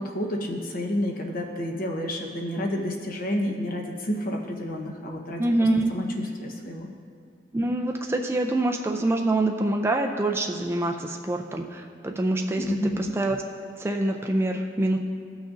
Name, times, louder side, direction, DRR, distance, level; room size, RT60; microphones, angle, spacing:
voice 1, 0.0-5.4 5.9-6.9 12.6-13.1, left 1 dB, 55° left, 1 dB, 1.0 m, -30 dB
voice 2, 5.4-5.9 7.5-13.4 13.6-15.0, right 2 dB, 15° right, 2 dB, 0.4 m, -25 dB
15.5 x 6.2 x 2.5 m, 2.1 s
head